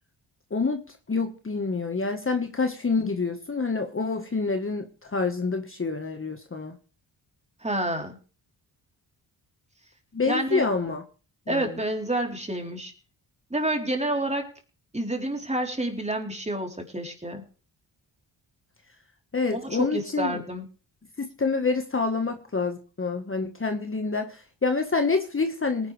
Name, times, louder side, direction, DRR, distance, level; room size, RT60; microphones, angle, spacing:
voice 1, 0.5-0.8 1.1-6.8 10.1-11.0 11.5-11.8 19.3-20.4 21.2-25.9, left 4 dB, 30° left, 6 dB, 1.5 m, -27 dB
voice 2, 7.6-8.2 10.3-10.7 11.5-12.9 13.5-14.5 14.9-17.4 19.5-20.6, right 1 dB, 15° right, 3 dB, 3.8 m, -29 dB
19.0 x 10.5 x 3.4 m, 0.37 s
cardioid pair, 80°, 45 cm